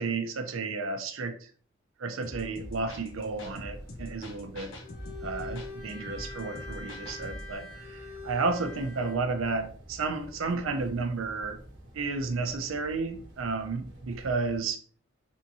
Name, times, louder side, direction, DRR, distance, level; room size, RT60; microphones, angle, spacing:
voice 1, 0.0-1.5 2.0-4.7 5.2-11.6 11.9-14.8, right 4 dB, 85° right, 0.6 m, -32 dB
sound 1, 2.2-7.5, left 1 dB, 70° left, 0.7 m, -43 dB
sound 2, 2.6-14.6, right 1 dB, 70° right, 1.2 m, -49 dB
Bowed string instrument, 4.8-9.3, left 3 dB, 55° left, 1.5 m, -44 dB
3.4 x 2.8 x 2.7 m
head